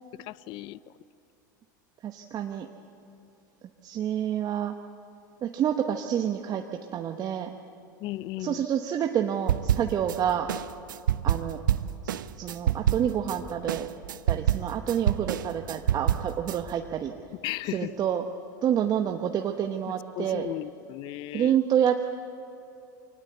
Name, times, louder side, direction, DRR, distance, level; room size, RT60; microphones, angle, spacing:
voice 1, 0.2-0.8 8.0-8.6 17.4-18.0 20.2-21.6, left 17 dB, 50° left, 0.5 m, -35 dB
voice 2, 2.0-2.7 3.8-4.7 5.4-6.6 6.9-7.5 8.4-10.5 11.2-11.6 12.0-13.9 14.3-17.1 17.7-18.2 18.6-20.5 21.3-22.1, right 9 dB, 40° right, 1.1 m, -28 dB
sound 1, 9.5-10.2 10.5-13.4 13.7-16.6, right 10 dB, 85° right, 0.6 m, -27 dB
24.0 x 19.0 x 8.1 m
hypercardioid pair, 95°, 10 cm